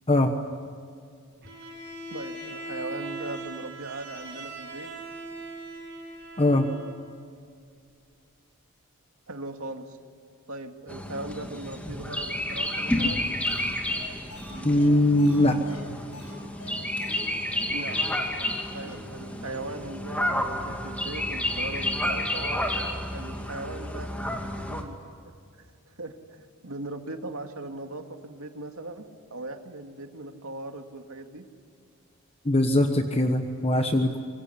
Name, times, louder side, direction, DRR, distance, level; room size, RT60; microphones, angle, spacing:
Bowed string instrument, 1.4-7.0, right 2 dB, 50° right, 6.5 m, -40 dB
voice 1, 2.1-4.9 9.3-10.0 10.5-13.2 17.7-18.0 18.7-22.6 23.1-24.1 24.7-25.0 25.2-31.4, right 2 dB, 75° right, 5 dB, 2.4 m, -39 dB
voice 2, 6.4-6.7 14.6-15.6 32.4-34.2, left 1 dB, 25° left, 6 dB, 1.2 m, -21 dB
sound 1, 10.9-24.8, left 1 dB, 5° left, 2.5 m, -30 dB
sound 2, 13.5-13.6 13.9-14.0 14.3-16.3 16.6-16.7 17.0-17.2 17.5-17.6 17.9-18.1 18.4-18.5 18.8-19.0 19.3-19.4 19.7-19.8, left 1 dB, 70° left, 7.8 m, -44 dB
25.0 x 23.5 x 10.0 m, 2.3 s
head